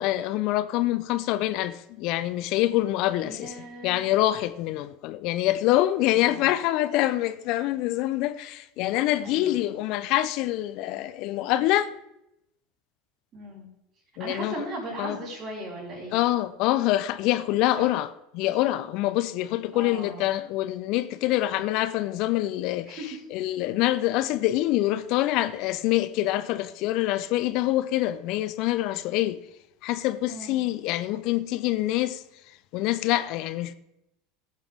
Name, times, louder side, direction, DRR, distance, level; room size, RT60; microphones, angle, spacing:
voice 1, 0.0-3.5 3.8-11.9 14.2-14.6 15.0-15.2 16.1-23.0 23.3-29.4 29.8-32.2 32.7-33.7, left 15 dB, 55° left, 0.5 m, -25 dB
voice 2, 3.2-4.0 6.0-6.5 9.2-9.6 13.3-13.7 14.2-16.2 17.7-17.9 19.7-20.3 22.8-23.2 30.3-30.6, right 1 dB, 45° right, 4.7 m, -38 dB
17.0 x 7.5 x 3.5 m
hypercardioid pair, 80°, 0 cm